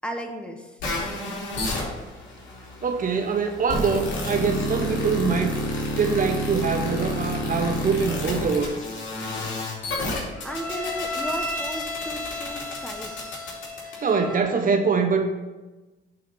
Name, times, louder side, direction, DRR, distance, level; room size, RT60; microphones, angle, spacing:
voice 1, 0.0-0.8 10.4-13.4, equal, 5° left, 3 dB, 1.2 m, -35 dB
sound 1, 0.8-14.4, left 1 dB, 70° left, 2.9 m, -30 dB
voice 2, 2.8-5.6 6.0-8.8 14.0-15.3, right 5 dB, 45° right, 5 dB, 0.9 m, -24 dB
8.5 x 4.1 x 6.6 m, 1.2 s
cardioid pair, 90°, 20 cm